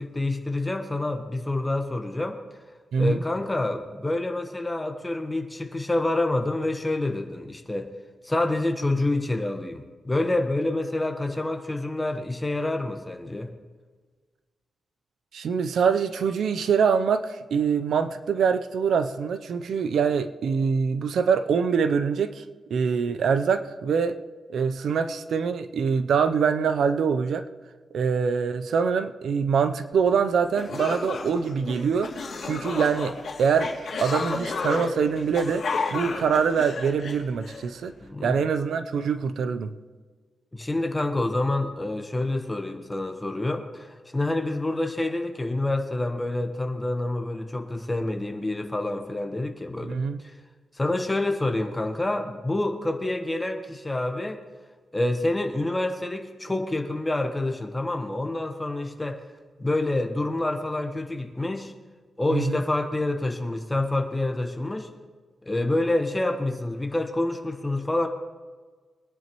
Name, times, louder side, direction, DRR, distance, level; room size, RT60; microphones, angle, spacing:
voice 1, 0.0-2.4 3.0-7.9 8.2-13.5 38.0-38.4 40.5-50.0 50.2-50.3 50.7-54.4 54.9-59.2 59.6-61.7 62.2-64.9 65.4-68.1, left 2 dB, 10° left, 5 dB, 1.1 m, -27 dB
voice 2, 15.3-22.4 22.7-24.1 24.5-27.4 27.9-32.1 32.4-33.1 33.4-33.7 34.0-37.9 38.2-39.7 49.8-50.2 62.3-62.6, right 6 dB, 70° right, 10 dB, 0.6 m, -24 dB
sound 1, 30.2-30.3 30.5-37.6, left 4 dB, 55° left, 2.5 m, -32 dB
22.5 x 10.5 x 3.1 m, 1.5 s
wide cardioid pair, 140°, 0 cm